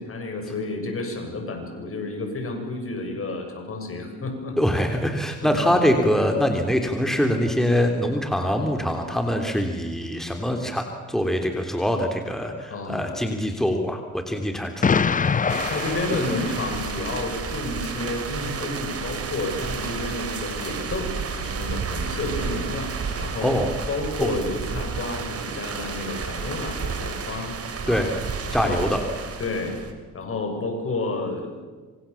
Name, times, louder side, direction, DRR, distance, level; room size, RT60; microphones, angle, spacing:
voice 1, 0.0-4.6 5.4-5.7 12.7-13.2 15.7-23.6 23.9-27.5 27.8-28.1 28.5-28.9 29.4-29.8 30.1-31.7, left 2 dB, 45° left, 4 dB, 7.7 m, -31 dB
voice 2, 4.6-15.0 23.4-23.7 24.2-24.3 27.9-28.1 28.5-29.0, equal, ahead, 4 dB, 3.4 m, -24 dB
Explosion, 14.8-17.0, left 5 dB, 25° left, 0.8 m, -24 dB
sound 1, 15.5-29.9, right 5 dB, 50° right, 4.4 m, -31 dB
26.5 x 26.5 x 7.3 m, 1.4 s
cardioid pair, 90°, 30 cm